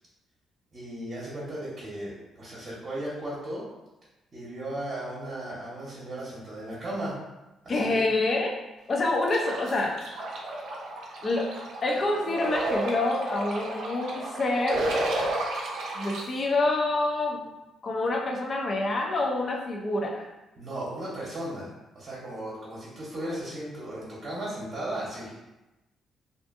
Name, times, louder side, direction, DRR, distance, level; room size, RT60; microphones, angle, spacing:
voice 1, 0.7-3.6 4.3-7.1 7.6-8.0 20.6-25.3, right 1 dB, 40° right, -6 dB, 0.8 m, -36 dB
voice 2, 7.7-8.6 8.9-10.2 11.2-14.9 15.9-17.5 17.8-20.2, left 2 dB, 40° left, 0 dB, 0.5 m, -27 dB
sound 1, 9.3-16.2, right 1 dB, 75° right, 0.5 m, -32 dB
2.5 x 2.4 x 2.5 m, 1.0 s
cardioid pair, 90°, 0 cm